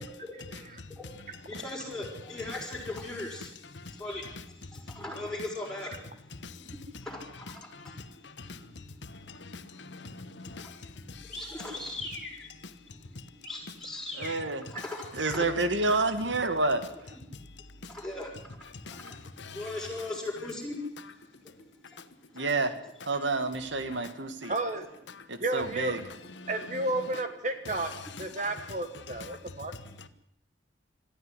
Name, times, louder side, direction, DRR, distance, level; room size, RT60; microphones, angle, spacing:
voice 1, 0.4-14.4 14.7-15.5 17.4-22.4 28.4-28.5 29.4-29.5 30.0-30.1, left 2 dB, 5° left, 6.2 m, -41 dB
voice 2, 7.7-8.6 9.0-11.3 13.2-13.3 17.8-17.9 18.9-19.6 22.4-22.5 25.1-25.2 26.4-26.5 29.1-29.4 30.0-30.1, left 3 dB, 75° left, 1.2 m, -45 dB
voice 3, 14.2-14.6 15.1-16.8 22.3-22.7 23.1-24.5 25.3-26.0, right 3 dB, 85° right, 1.9 m, -28 dB
voice 4, 24.5-24.8 25.4-26.0 26.5-27.9 28.2-29.7, right 2 dB, 40° right, 1.4 m, -32 dB
21.5 x 14.0 x 9.9 m
head